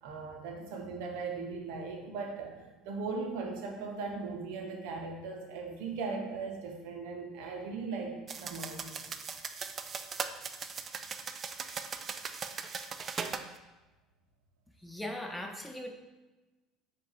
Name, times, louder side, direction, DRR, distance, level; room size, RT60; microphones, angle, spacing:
voice 1, 0.0-9.0, right 4 dB, 75° right, 2 dB, 0.7 m, -38 dB
sound 1, 8.3-13.5, right 5 dB, 40° right, 0.3 m, -39 dB
voice 2, 14.8-15.9, left 1 dB, 5° left, 2 dB, 0.7 m, -39 dB
4.5 x 2.5 x 4.3 m, 1.1 s
hypercardioid pair, 75°, 0 cm